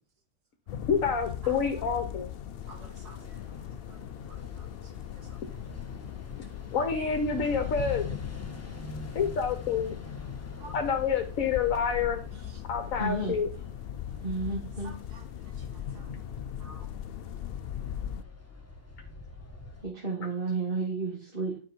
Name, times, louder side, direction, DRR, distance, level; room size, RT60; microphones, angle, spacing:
sound 1, 0.7-18.2, left 9 dB, 80° left, 0.5 m, -39 dB
voice 1, 0.9-2.3 6.7-8.1 9.1-9.9 10.7-12.2 12.7-13.5, left 6 dB, 60° left, 1.4 m, -28 dB
voice 2, 1.4-1.8 2.7-3.4 4.3-4.7 5.3-5.4 10.6-10.8 12.3-12.5 14.8-15.2 15.6-16.1 16.6-16.9, right 2 dB, 75° right, 2.2 m, -51 dB
sound 2, 2.6-19.8, left 1 dB, 10° left, 1.3 m, -49 dB
voice 3, 13.0-13.4 14.2-14.9 19.8-21.6, right 3 dB, 35° right, 2.0 m, -32 dB
10.5 x 5.2 x 4.5 m
omnidirectional pair, 1.7 m